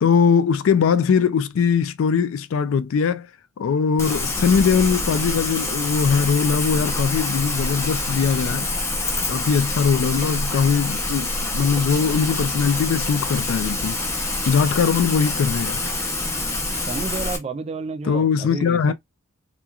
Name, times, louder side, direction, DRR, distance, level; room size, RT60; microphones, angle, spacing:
voice 1, 0.0-3.3 3.6-8.7 9.3-14.0 14.5-15.8 18.1-18.9, left 6 dB, 90° left, 0.4 m, -20 dB
Rain, 4.0-17.4, left 2 dB, 15° left, 0.6 m, -26 dB
voice 2, 16.8-18.9, right 4 dB, 30° right, 0.3 m, -31 dB
2.9 x 2.3 x 2.3 m
head